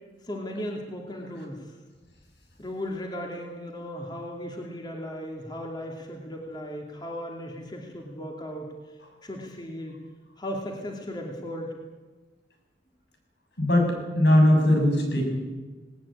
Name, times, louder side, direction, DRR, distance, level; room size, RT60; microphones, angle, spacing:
voice 1, 0.2-1.7 2.6-10.0 10.4-11.8, equal, 25° left, 0 dB, 2.6 m, -36 dB
voice 2, 13.6-15.3, left 1 dB, 80° left, 2 dB, 6.9 m, -20 dB
19.0 x 19.0 x 8.6 m, 1.3 s
head